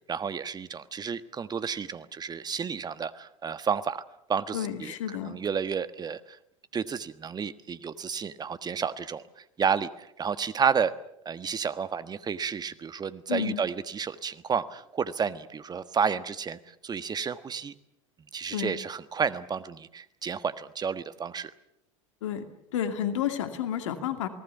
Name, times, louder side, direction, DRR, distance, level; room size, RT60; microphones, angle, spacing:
voice 1, 0.1-4.0 4.3-6.2 6.7-9.2 9.6-10.9 11.2-17.7 18.3-21.5, right 6 dB, 25° right, 13 dB, 1.4 m, -31 dB
voice 2, 4.5-5.4 13.3-13.6 18.5-18.7 22.2-22.4 22.7-24.3, left 9 dB, 70° left, 8 dB, 2.5 m, -30 dB
28.5 x 19.0 x 7.1 m, 0.77 s
hypercardioid pair, 80°, 17 cm